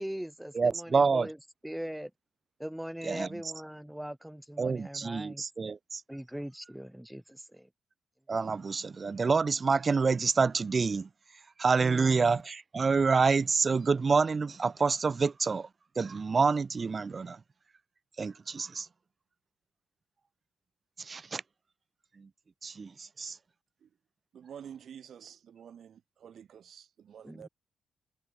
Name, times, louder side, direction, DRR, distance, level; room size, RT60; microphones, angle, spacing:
voice 1, 0.0-1.4 1.6-2.1 2.6-5.4 6.1-7.7 11.8-12.4 27.2-27.5, equal, 5° right, 2.5 m, -40 dB
voice 2, 0.5-1.3 3.0-3.3 4.6-6.0 8.3-11.1 11.6-15.7 15.9-17.4 18.2-18.9 21.0-21.4 22.2-22.3 22.6-23.4, right 4 dB, 30° right, 1.2 m, -27 dB
voice 3, 24.3-27.5, right 8 dB, 55° right, 1.5 m, -49 dB
cardioid pair, 135°, 0 cm